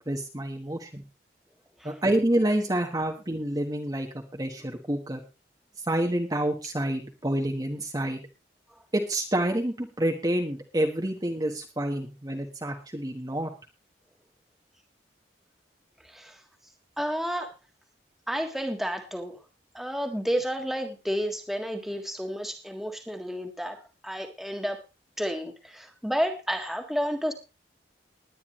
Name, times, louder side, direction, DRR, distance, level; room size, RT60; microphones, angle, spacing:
voice 1, 0.1-1.0 1.8-5.2 5.9-8.2 8.9-13.5, right 1 dB, 20° right, 2 dB, 1.2 m, -28 dB
voice 2, 16.0-16.4 17.0-17.5 18.3-19.4 19.7-24.8 25.2-27.3, equal, ahead, 4 dB, 1.6 m, -31 dB
20.5 x 9.6 x 3.1 m, 0.29 s
head